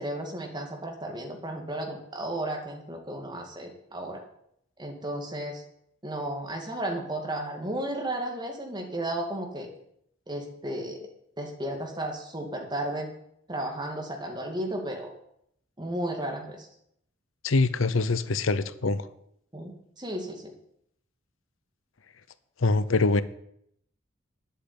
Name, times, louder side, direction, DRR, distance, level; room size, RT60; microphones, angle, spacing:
voice 1, 0.0-4.2 4.8-5.6 6.0-9.7 10.3-11.1 11.4-13.1 13.5-15.1 15.8-16.7 19.5-20.5, right 1 dB, 20° right, 2 dB, 2.3 m, -34 dB
voice 2, 17.4-19.1 22.6-23.2, left 3 dB, 85° left, 14 dB, 0.7 m, -24 dB
10.0 x 8.4 x 8.6 m, 0.73 s
head